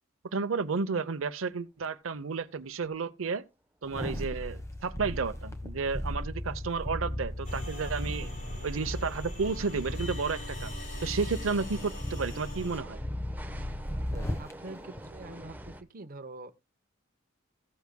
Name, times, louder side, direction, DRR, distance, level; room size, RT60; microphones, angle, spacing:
voice 1, 0.3-3.4 3.8-8.3 8.6-10.7 11.0-13.0, right 4 dB, 85° right, 0.7 m, -32 dB
sound 1, 1.5-1.6 1.8-1.9 2.2-2.4 2.8-3.0 6.0-6.1 6.6-15.8, right 1 dB, 10° right, 0.9 m, -50 dB
sound 2, 3.8-14.5 14.9-15.1, left 1 dB, 15° left, 1.2 m, -36 dB
sound 3, 7.4-12.8, left 1 dB, 40° left, 4.1 m, -43 dB
voice 2, 14.1-16.6, right 2 dB, 45° right, 0.8 m, -45 dB
16.0 x 8.2 x 2.2 m
head